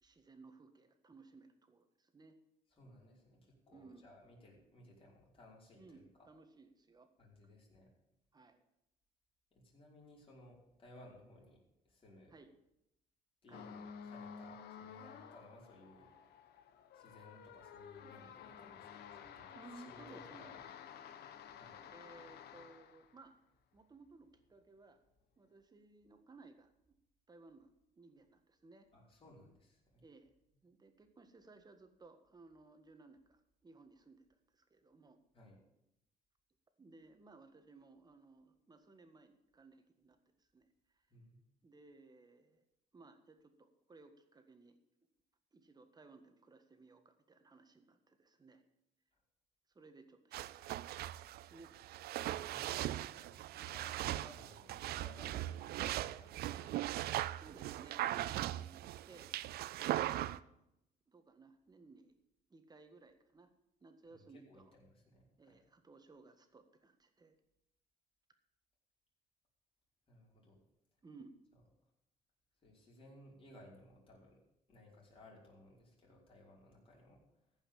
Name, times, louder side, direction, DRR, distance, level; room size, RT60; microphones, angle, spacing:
voice 1, 0.0-2.4 3.7-4.0 5.8-7.1 8.3-8.6 12.3-12.5 13.5-13.7 19.5-20.6 21.8-23.4 23.7-25.0 25.4-26.7 27.3-27.7 27.9-28.9 30.0-30.3 30.6-34.3 34.5-35.2 36.8-40.7 40.9-41.0 41.6-42.6 42.9-44.8 45.5-48.6 49.7-51.7 57.3-59.3 59.7-60.5 61.1-62.2 62.5-63.5 63.8-64.7 65.4-67.3 71.0-71.3, right 3 dB, 25° right, 7 dB, 1.6 m, -60 dB
voice 2, 2.7-6.3 7.2-7.9 9.5-12.3 13.4-16.1 16.9-20.7 21.5-21.8 28.9-30.0 35.3-35.6 41.1-41.4 52.4-56.7 58.0-58.4 64.1-65.6 70.1-70.6 72.6-74.4 74.7-77.2, left 1 dB, 30° left, -3 dB, 5.3 m, -60 dB
sound 1, 13.5-23.2, left 7 dB, 70° left, 1.2 m, -53 dB
sound 2, 50.3-60.4, right 14 dB, 70° right, 0.5 m, -39 dB
15.0 x 5.7 x 8.6 m, 0.83 s
cardioid pair, 110°, 17 cm